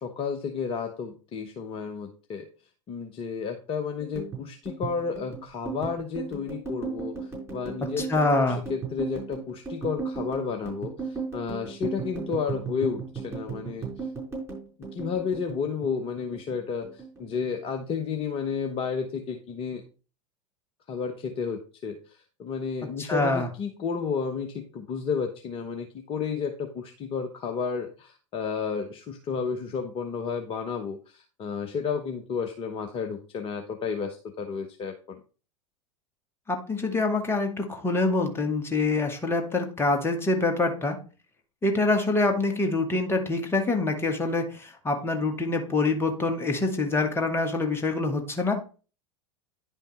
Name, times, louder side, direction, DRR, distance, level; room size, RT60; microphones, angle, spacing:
voice 1, 0.0-2.4 2.9-14.1 14.9-19.8 20.9-35.2, left 6 dB, 30° left, 5 dB, 1.0 m, -32 dB
sound 1, 4.0-16.6 16.8-17.9 18.2-18.5 18.8-19.5, right 5 dB, 15° right, 4.9 m, -36 dB
voice 2, 8.0-8.6 23.0-23.5 36.5-41.0 41.6-48.6, left 3 dB, 15° left, 4 dB, 1.8 m, -25 dB
10.0 x 5.7 x 4.1 m, 0.36 s
figure-of-eight pair, 85°, 18 cm